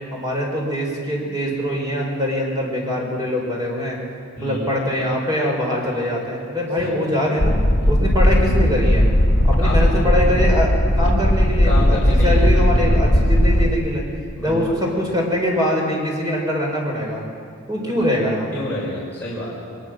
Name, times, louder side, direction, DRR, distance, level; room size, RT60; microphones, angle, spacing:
voice 1, 0.1-4.0 4.4-7.5 7.9-9.0 9.4-14.0 14.4-17.2 17.7-18.6, equal, 20° right, -1 dB, 4.7 m, -23 dB
voice 2, 4.3-4.7 6.8-7.2 9.6-10.3 11.6-12.4 14.4-14.8 18.5-19.5, left 1 dB, 10° left, -9 dB, 5.7 m, -29 dB
sound 1, 7.4-13.7, equal, 60° left, 2.3 m, -16 dB
22.0 x 20.5 x 6.3 m, 2.3 s
head